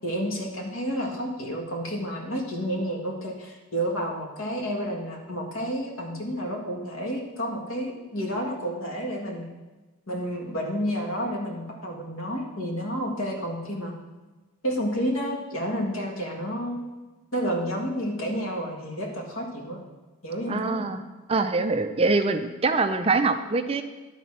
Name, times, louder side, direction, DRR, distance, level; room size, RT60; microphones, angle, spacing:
voice 1, 0.0-9.4 10.1-13.9 14.6-16.8 17.3-19.8 20.2-20.9, equal, 80° left, 0 dB, 1.8 m, -30 dB
voice 2, 20.5-21.0 21.3-23.8, right 3 dB, 25° right, 8 dB, 0.4 m, -24 dB
11.5 x 4.1 x 5.9 m, 1.2 s
head